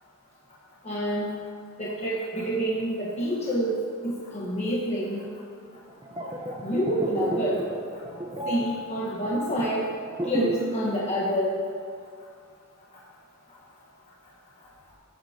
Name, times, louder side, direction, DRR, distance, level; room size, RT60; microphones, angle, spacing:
voice 1, 0.8-1.3 1.8-3.8 4.0-5.3 6.6-7.6 8.5-9.9 10.3-11.5, equal, 30° left, -6 dB, 1.3 m, -27 dB
sound 1, 5.9-10.8 11.0-11.3, right 1 dB, 20° right, 0.9 m, -33 dB
18.0 x 9.3 x 2.9 m, 2.3 s
head